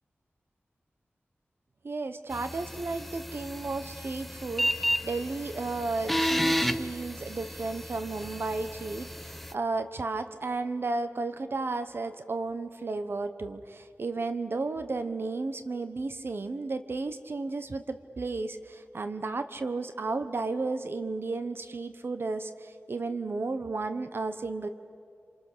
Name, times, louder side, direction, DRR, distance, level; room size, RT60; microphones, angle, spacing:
voice 1, 1.8-24.7, right 3 dB, 60° right, 9 dB, 1.1 m, -33 dB
sound 1, 2.3-9.5, equal, 5° left, 1.0 m, -32 dB
27.5 x 27.5 x 6.8 m, 2.5 s
wide cardioid pair, 80°, 4 cm